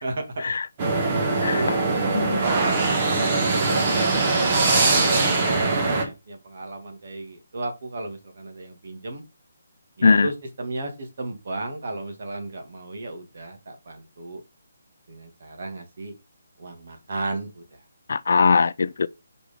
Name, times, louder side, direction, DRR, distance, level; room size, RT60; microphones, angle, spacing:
voice 1, 0.0-0.5 1.3-1.8 2.4-3.2 3.5-4.2 4.6-9.2 10.0-10.3 10.6-14.4 15.1-16.1 16.6-17.8, right 2 dB, 50° right, 2.1 m, -34 dB
sound 1, 0.8-6.0, right 3 dB, 25° right, 1.3 m, -21 dB
voice 2, 1.4-1.8 2.1-2.4 2.9-3.0 10.0-10.3 18.1-19.1, left 5 dB, 55° left, 0.4 m, -20 dB
5.1 x 4.5 x 5.2 m
hypercardioid pair, 170°, 0 cm